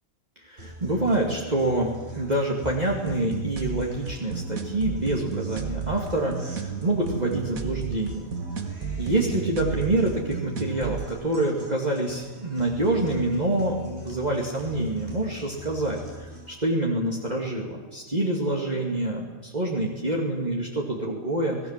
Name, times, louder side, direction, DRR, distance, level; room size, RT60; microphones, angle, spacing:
voice 1, 0.4-8.3 9.0-21.7, right 1 dB, 30° right, -2 dB, 2.8 m, -26 dB
Guitar, 0.6-16.6, right 1 dB, 50° right, 6.9 m, -44 dB
sound 1, 3.1-11.1, right 6 dB, 90° right, 2.1 m, -33 dB
27.0 x 19.0 x 7.6 m, 1.2 s
omnidirectional pair, 1.4 m